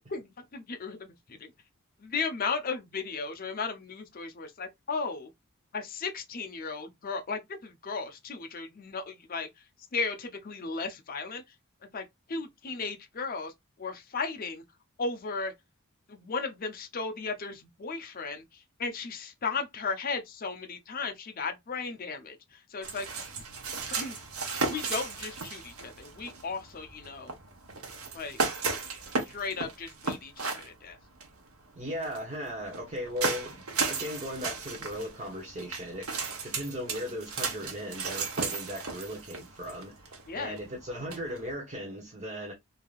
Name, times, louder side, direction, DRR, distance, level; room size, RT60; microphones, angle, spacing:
voice 1, 0.1-1.1 1.4-1.5 2.0-5.3 5.7-9.5 9.9-11.4 11.9-13.5 13.8-14.6 15.0-15.5 16.1-23.1 23.3-23.4 23.9-24.1 24.6-27.3 28.1-28.4 29.3-31.0 40.3-40.6, left 4 dB, 40° left, 0.6 m, -35 dB
sound 1, 22.8-41.5, right 4 dB, 80° right, 0.9 m, -35 dB
voice 2, 31.8-36.1 36.4-42.5, equal, 30° right, 0.8 m, -37 dB
3.2 x 2.7 x 2.4 m
head